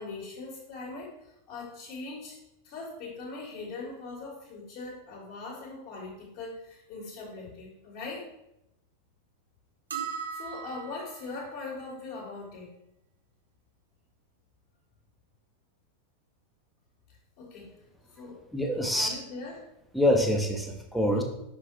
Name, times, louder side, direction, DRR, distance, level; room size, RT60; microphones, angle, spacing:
voice 1, 0.0-2.4 2.6-8.3 10.1-12.7 17.4-17.8 18.1-18.4 18.9-19.7, left 3 dB, 45° left, -4 dB, 2.1 m, -41 dB
sound 1, 9.9-11.2, right 7 dB, 70° right, 0.7 m, -37 dB
voice 2, 18.5-19.1 19.9-21.2, left 1 dB, ahead, 2 dB, 1.0 m, -25 dB
5.7 x 3.9 x 4.7 m, 0.84 s
figure-of-eight pair, 90°, 0 cm